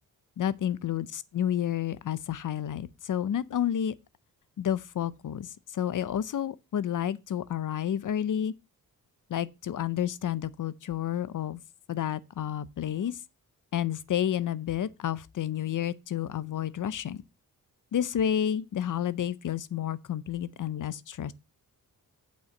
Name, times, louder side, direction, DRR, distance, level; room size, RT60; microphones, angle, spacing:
voice 1, 0.4-3.9 4.6-8.5 9.3-11.6 11.9-13.2 13.7-17.2 17.9-21.3, left 10 dB, 60° left, 0.6 m, -30 dB
8.5 x 4.4 x 6.4 m
wide cardioid pair, 110°, 35 cm